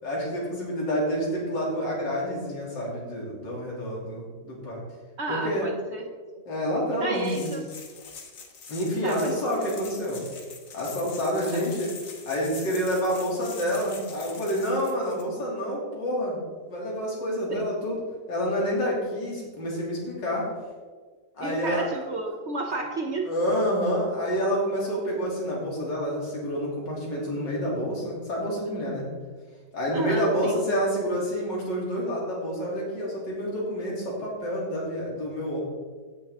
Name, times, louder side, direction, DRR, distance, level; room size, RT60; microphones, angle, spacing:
voice 1, 0.0-4.8 5.3-5.7 6.5-7.5 8.7-10.2 10.7-11.9 12.3-16.4 16.7-18.0 18.3-20.5 21.4-21.8 23.3-29.1 29.7-35.6, equal, 90° left, -4 dB, 3.4 m, -28 dB
voice 2, 5.2-6.1 7.0-7.7 9.0-9.4 11.5-11.6 17.5-17.7 21.4-23.3 29.9-30.6, right 3 dB, 55° right, 4 dB, 0.8 m, -32 dB
sound 1, 7.1-15.2, left 5 dB, 50° left, 1.5 m, -44 dB
15.0 x 6.6 x 3.6 m, 1.5 s
omnidirectional pair, 1.9 m